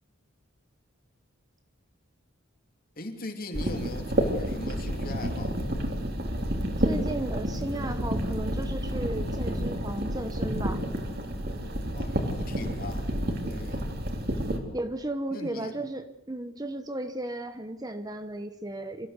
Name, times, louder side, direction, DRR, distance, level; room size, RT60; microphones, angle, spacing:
voice 1, 3.0-5.6 11.9-13.1 13.5-13.9 15.3-15.7, left 2 dB, 40° left, 5 dB, 3.0 m, -40 dB
sound 1, 3.5-14.6, equal, 45° right, 3.3 m, -30 dB
voice 2, 6.8-10.8 14.7-19.1, right 1 dB, 15° right, 9 dB, 1.0 m, -34 dB
25.5 x 15.5 x 8.2 m, 0.84 s
head